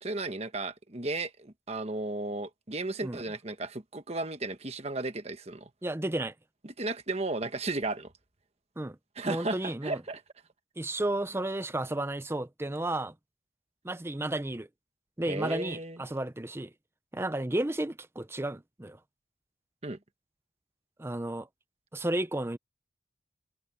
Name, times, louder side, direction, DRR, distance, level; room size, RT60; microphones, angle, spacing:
voice 1, 0.0-5.7 6.6-8.1 9.2-10.2 15.2-16.0 19.8-20.0, right 2 dB, 35° right, 1.3 m, -34 dB
voice 2, 5.8-6.3 8.8-9.0 9.2-10.0 10.8-13.1 13.8-14.7 15.2-16.7 17.1-19.0 21.0-21.5 21.9-22.6, right 1 dB, 15° right, 0.6 m, -32 dB
head